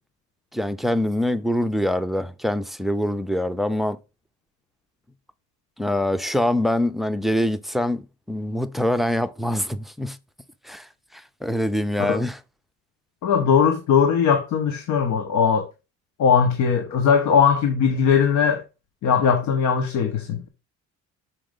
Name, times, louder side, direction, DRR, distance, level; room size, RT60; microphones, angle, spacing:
voice 1, 0.5-4.0 5.8-10.2 10.6-10.9 11.4-12.4, left 1 dB, ahead, 0.5 m, -24 dB
voice 2, 13.2-15.7 16.2-18.6 19.0-20.5, left 7 dB, 70° left, 1.1 m, -19 dB
6.2 x 4.8 x 3.7 m
cardioid pair, 110°, 30 cm